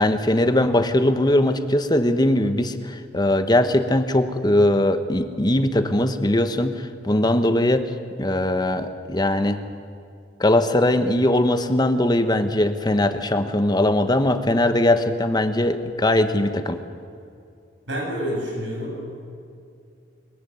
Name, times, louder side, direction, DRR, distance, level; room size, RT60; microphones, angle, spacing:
voice 1, 0.0-7.8 8.2-9.6 10.4-16.8, left 1 dB, 25° left, 9 dB, 1.1 m, -20 dB
voice 2, 17.9-19.0, equal, 90° right, -1 dB, 7.7 m, -28 dB
22.5 x 14.5 x 9.4 m, 2.5 s
head